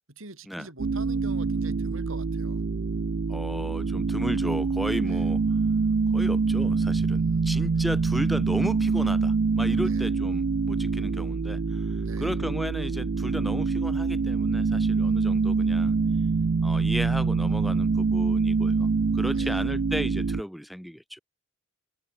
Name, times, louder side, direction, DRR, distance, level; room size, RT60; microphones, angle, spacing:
voice 1, 0.0-2.6 5.0-5.3 7.1-7.6 9.8-10.0 12.0-12.3 15.0-15.5 19.3-19.6, right 2 dB, 75° right, 4.2 m, -45 dB
sound 1, 0.8-20.4, right 4 dB, 55° right, 0.4 m, -25 dB
voice 2, 3.3-5.4 6.1-11.9 12.2-16.0 16.6-21.2, equal, ahead, 4.9 m, -34 dB
head